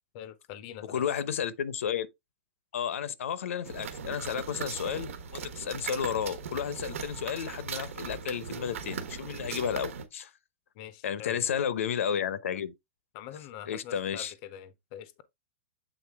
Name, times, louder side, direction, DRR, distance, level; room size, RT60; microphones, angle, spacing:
voice 1, 0.1-1.0 10.7-11.5 13.1-15.2, left 10 dB, 30° left, 0.6 m, -44 dB
voice 2, 0.9-2.1 2.7-10.3 11.0-12.7 13.7-14.3, left 8 dB, 80° left, 0.8 m, -32 dB
sound 1, 3.6-10.1, right 6 dB, 80° right, 1.4 m, -39 dB
8.0 x 3.9 x 3.5 m
supercardioid pair, 170°, 7 cm